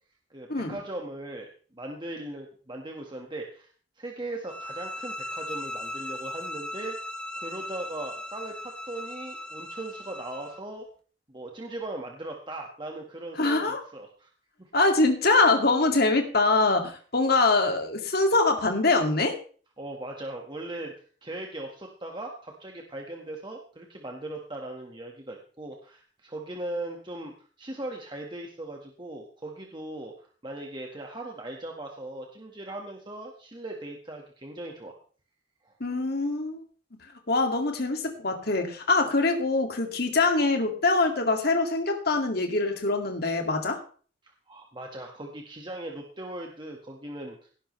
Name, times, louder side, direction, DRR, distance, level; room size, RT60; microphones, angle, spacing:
voice 1, 0.3-3.7 4.0-7.0 7.3-10.9 11.3-14.3 14.6-14.7 19.8-20.9 21.2-34.9 35.6-35.7 44.5-47.5, right 1 dB, 25° right, 1 dB, 1.7 m, -39 dB
sound 1, 4.5-10.6, left 1 dB, 5° left, 0.8 m, -38 dB
voice 2, 13.4-13.8 14.7-19.4 35.8-36.6 37.3-43.8, left 3 dB, 55° left, 4 dB, 2.3 m, -24 dB
17.5 x 11.5 x 3.3 m, 0.42 s
head